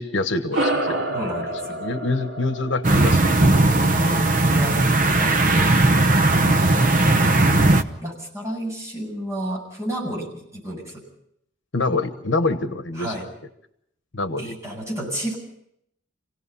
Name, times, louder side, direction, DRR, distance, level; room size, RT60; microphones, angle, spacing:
voice 1, 0.0-1.2 1.4-1.5 1.8-3.5 5.5-5.7 11.7-13.1 14.1-14.5, left 2 dB, 70° left, 10 dB, 1.2 m, -26 dB
sound 1, 0.5-5.3, right 1 dB, 80° right, 2.9 m, -29 dB
voice 2, 1.1-1.8 3.9-5.6 6.3-7.0 7.4-7.6 8.0-11.0 13.0-13.3 14.4-15.4, right 1 dB, 15° right, -2 dB, 7.5 m, -31 dB
sound 2, 2.8-7.8, right 2 dB, 45° right, 0.9 m, -17 dB
27.5 x 17.5 x 5.6 m, 0.73 s
head